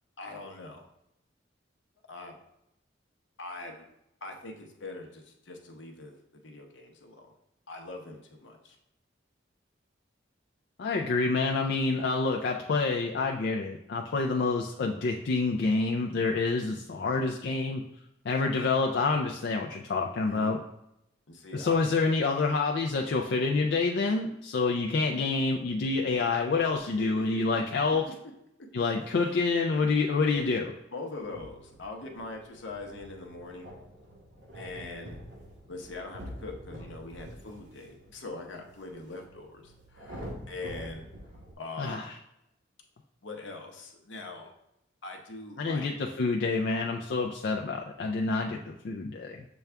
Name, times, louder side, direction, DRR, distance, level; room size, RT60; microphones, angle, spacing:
voice 1, 0.2-0.8 2.1-2.4 3.4-3.9 4.2-7.3 7.7-8.8 20.2-20.6 21.3-21.8 27.0-27.4 28.1-28.2 29.0-29.4 29.8-29.9 30.2-30.5 30.9-33.7 34.5-35.2 35.7-41.0 41.6-42.1 43.2-44.5 45.0-45.9, left 3 dB, 75° left, 2 dB, 0.8 m, -42 dB
voice 2, 10.8-17.8 18.3-20.6 21.5-28.1 28.7-30.7 41.8-42.1 45.6-49.4, left 3 dB, 60° left, 0 dB, 0.3 m, -27 dB
sound 1, 31.2-41.5, equal, 65° right, 1.0 m, -46 dB
6.9 x 2.3 x 3.3 m, 0.82 s
head